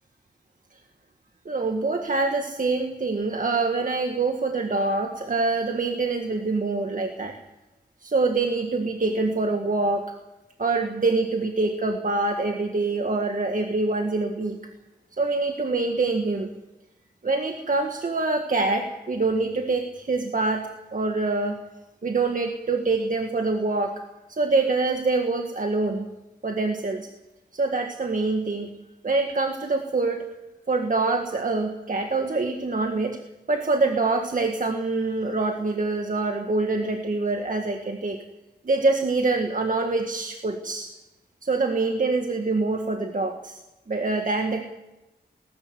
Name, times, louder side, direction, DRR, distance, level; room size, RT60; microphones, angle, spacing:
voice 1, 1.5-7.4 8.0-10.1 10.6-14.6 15.2-16.5 17.2-21.6 22.0-24.0 24.3-26.1 26.4-27.1 27.5-28.7 29.0-30.3 30.7-33.2 33.5-38.2 38.7-40.9 41.4-43.6 43.9-44.6, right 3 dB, 50° right, 3 dB, 1.9 m, -25 dB
19.5 x 14.5 x 9.7 m, 1.0 s
wide cardioid pair, 110°, 17 cm